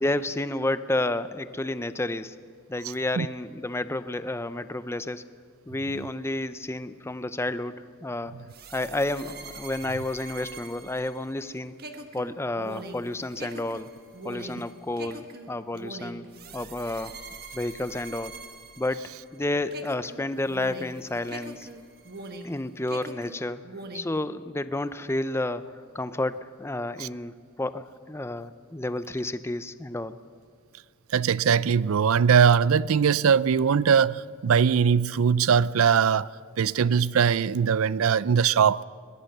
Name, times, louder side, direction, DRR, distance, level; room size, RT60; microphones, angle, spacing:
voice 1, 0.0-2.4 2.7-5.3 5.7-8.3 8.7-11.7 12.1-13.9 14.2-16.3 16.5-17.2 17.5-18.4 18.8-19.0 19.3-21.7 22.4-23.7 23.9-25.7 25.9-30.2, left 2 dB, 10° left, 0.5 m, -30 dB
sound 1, 8.5-19.4 19.7-22.6 22.9-24.2, right 2 dB, 45° right, 1.5 m, -42 dB
voice 2, 31.1-36.3 36.6-38.8, right 7 dB, 70° right, 0.4 m, -21 dB
22.5 x 19.5 x 6.7 m
head